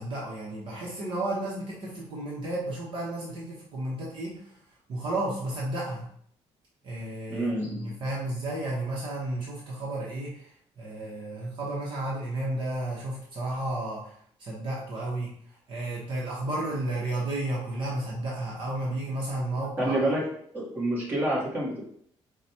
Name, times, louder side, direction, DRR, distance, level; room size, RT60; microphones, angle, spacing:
voice 1, 0.0-4.4 4.9-6.1 6.8-10.5 10.8-14.1 14.4-15.3 15.7-20.0, right 1 dB, 45° right, -4 dB, 1.0 m, -32 dB
voice 2, 7.3-7.9 19.8-20.2 20.5-21.8, right 1 dB, 15° right, -6 dB, 1.3 m, -28 dB
4.8 x 2.3 x 4.3 m, 0.64 s
cardioid pair, 180°, 11 cm